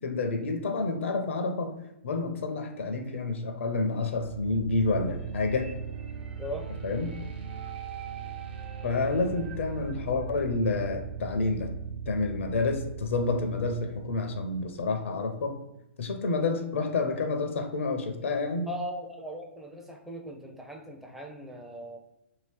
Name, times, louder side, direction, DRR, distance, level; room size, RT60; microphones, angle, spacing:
voice 1, 0.0-1.7 2.0-5.8 6.8-7.1 8.8-11.7 12.1-15.5 16.0-18.7, left 3 dB, 70° left, 6 dB, 0.5 m, -29 dB
sound 1, 4.1-15.0, right 7 dB, 55° right, 0.6 m, -39 dB
voice 2, 18.7-22.0, equal, 5° right, 1 dB, 0.5 m, -39 dB
2.8 x 2.7 x 3.2 m, 0.86 s
hypercardioid pair, 115°, 7 cm